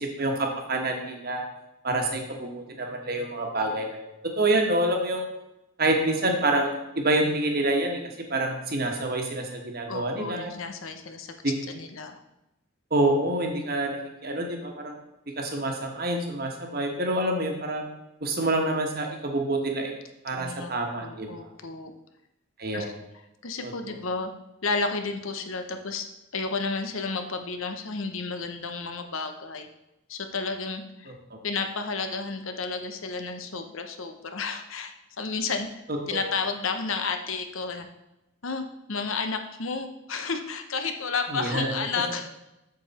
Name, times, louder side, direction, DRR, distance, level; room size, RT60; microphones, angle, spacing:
voice 1, 0.0-1.4 1.8-4.1 4.4-5.2 5.8-8.0 8.3-10.5 11.4-11.5 12.9-15.0 15.4-17.8 18.2-19.9 20.2-21.5 22.6-23.0 23.6-23.9 31.1-31.4 36.1-36.2 41.3-41.8, right 2 dB, 45° right, 2 dB, 1.4 m, -27 dB
voice 2, 9.9-11.3 11.7-12.2 20.3-20.7 21.0-21.9 22.7-22.9 23.4-24.3 24.6-26.1 26.3-29.7 30.1-31.1 31.4-35.7 36.1-37.9 38.4-42.3, left 4 dB, 70° left, 6 dB, 0.9 m, -32 dB
7.8 x 7.0 x 4.2 m, 0.92 s
head